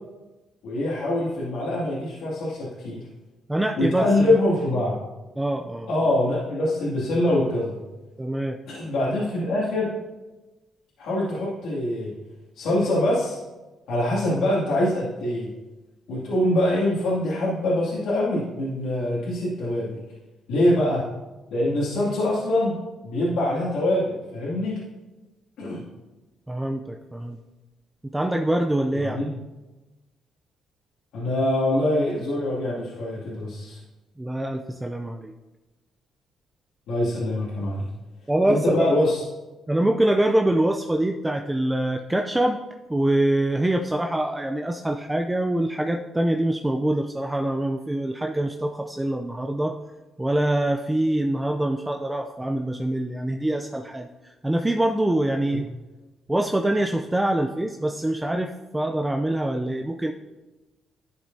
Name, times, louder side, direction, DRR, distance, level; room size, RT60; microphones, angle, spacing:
voice 1, 0.6-3.0 3.8-5.0 5.9-7.8 8.7-9.9 11.0-12.1 12.6-13.4 13.9-15.5 16.1-20.0 20.5-21.0 21.5-22.8 23.0-24.8 25.6-25.8 28.9-29.3 31.1-33.8 36.9-37.8 38.5-39.2 55.5-55.6, left 1 dB, 85° left, -9 dB, 2.4 m, -24 dB
voice 2, 3.5-4.1 5.4-5.9 8.2-8.6 26.5-27.4 28.0-29.2 34.2-35.3 38.3-38.9 39.7-42.6 42.9-49.8 50.2-55.7 56.3-60.1, right 1 dB, 10° right, 3 dB, 0.5 m, -24 dB
11.5 x 7.0 x 2.8 m, 1.1 s
cardioid pair, 90°, 0 cm